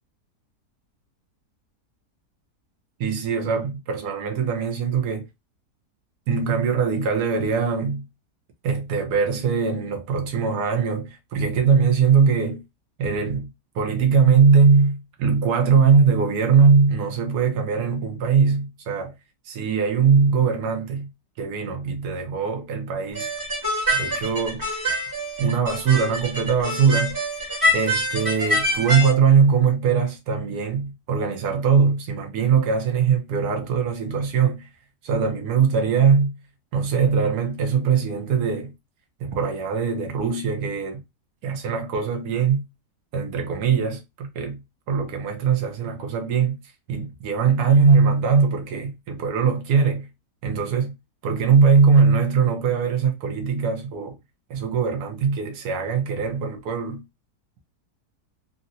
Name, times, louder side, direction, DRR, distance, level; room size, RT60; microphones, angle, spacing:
voice 1, 3.0-5.2 6.3-8.0 8.6-12.6 13.0-13.5 13.7-19.1 19.5-21.1 21.4-23.3 23.9-24.6 25.4-27.2 27.7-34.7 35.0-36.4 36.7-38.7 39.2-41.0 41.4-42.6 43.1-44.6 44.9-46.6 46.9-50.1 50.4-50.9 51.2-54.2 54.5-57.0, right 6 dB, 75° right, 1.4 m, -21 dB
sound 1, 23.1-29.1, equal, 15° right, 0.9 m, -25 dB
3.8 x 2.1 x 2.6 m
omnidirectional pair, 1.8 m